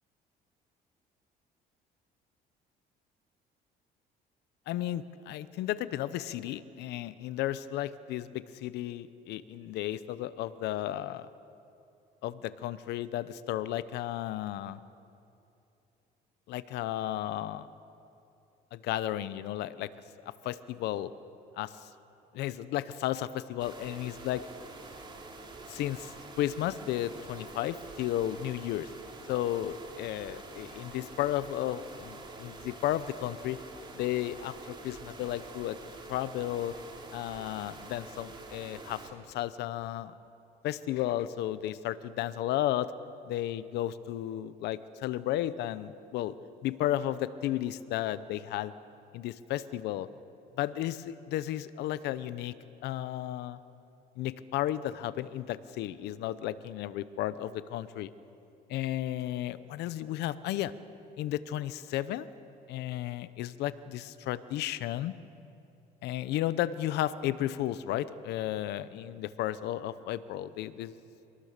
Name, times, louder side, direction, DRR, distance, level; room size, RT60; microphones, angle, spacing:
voice 1, 4.7-11.3 12.2-14.8 16.5-17.7 18.7-19.9 20.4-21.1 21.6-21.9 22.3-24.5 25.7-28.9 29.3-33.6 33.9-35.8 36.1-36.7 37.1-40.1 40.6-42.9 43.3-46.3 46.6-48.7 49.1-50.1 50.6-52.6 52.8-53.6 54.2-58.1 58.7-60.7 61.2-62.3 62.7-65.1 66.0-70.9, left 13 dB, 80° left, 15 dB, 0.8 m, -33 dB
sound 1, 23.6-39.1, right 3 dB, 30° right, 3.0 m, -47 dB
26.0 x 19.5 x 6.7 m, 2.8 s
cardioid pair, 110°, 17 cm